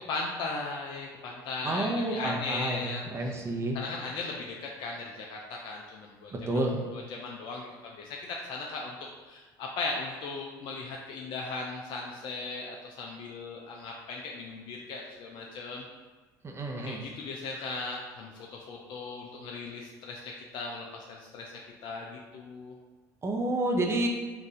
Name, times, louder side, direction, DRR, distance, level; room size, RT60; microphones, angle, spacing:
voice 1, 0.1-3.4 3.7-6.6 6.9-9.0 9.3-15.9 16.8-21.5 21.8-22.7, left 3 dB, 55° left, -1 dB, 0.5 m, -38 dB
voice 2, 1.6-3.8 6.3-6.8 16.4-17.0 23.2-24.1, right 1 dB, 25° right, 1 dB, 0.8 m, -30 dB
4.0 x 2.6 x 3.6 m, 1.3 s
hypercardioid pair, 75°, 10 cm